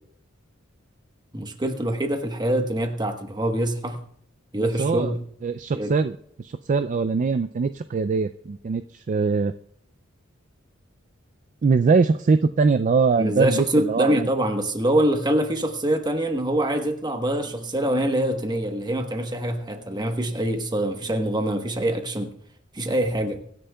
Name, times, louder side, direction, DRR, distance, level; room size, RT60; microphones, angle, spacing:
voice 1, 1.3-4.0 4.5-5.2 5.7-5.9 13.2-22.3 22.7-23.4, right 1 dB, 20° right, 5 dB, 1.2 m, -24 dB
voice 2, 4.5-5.1 5.4-9.5 11.6-14.3, right 4 dB, 40° right, 11 dB, 0.3 m, -22 dB
23.5 x 10.0 x 2.3 m, 0.68 s
head